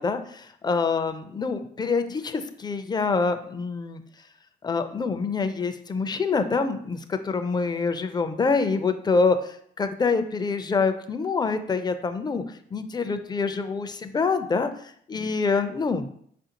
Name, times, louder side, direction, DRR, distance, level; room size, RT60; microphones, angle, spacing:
voice 1, 0.0-4.0 4.6-14.7 15.1-16.1, left 4 dB, 20° left, 8 dB, 0.3 m, -26 dB
4.6 x 2.5 x 2.8 m, 0.63 s
cardioid pair, 90°, 20 cm